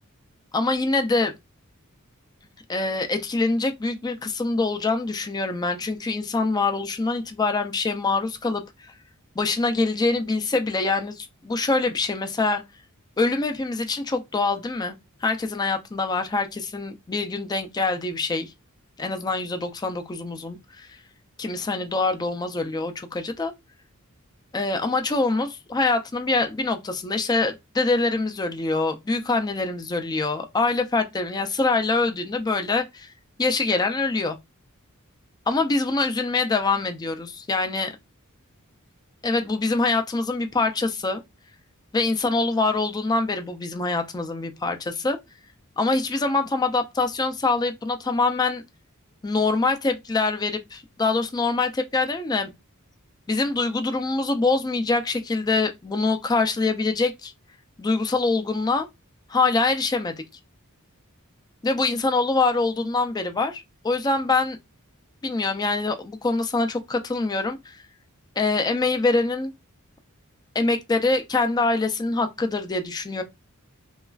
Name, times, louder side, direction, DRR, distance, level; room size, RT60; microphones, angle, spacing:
voice 1, 0.5-1.3 2.7-8.6 9.4-12.6 13.2-18.5 19.0-20.9 21.4-23.5 24.5-33.1 33.4-34.4 35.5-37.9 39.2-41.2 41.9-45.2 45.8-48.6 49.2-52.5 53.3-57.3 57.8-58.9 59.3-60.1 61.6-64.6 65.2-67.8 68.4-69.5 70.6-73.2, left 3 dB, 20° left, 0.3 m, -24 dB
3.1 x 2.3 x 2.3 m
head